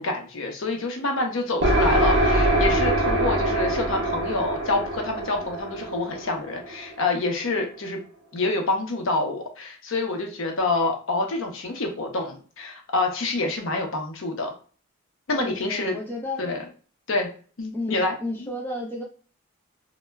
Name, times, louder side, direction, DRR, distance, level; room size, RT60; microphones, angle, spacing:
voice 1, 0.0-8.0 8.3-14.5 15.3-15.9 16.4-16.6 17.1-17.3 17.6-18.5, left 2 dB, 65° left, 2 dB, 0.7 m, -27 dB
sound 1, 1.6-7.2, right 1 dB, 55° right, 0.6 m, -23 dB
voice 2, 15.3-16.4 17.7-19.0, left 1 dB, 10° left, -3 dB, 0.5 m, -32 dB
2.1 x 2.0 x 3.3 m, 0.40 s
head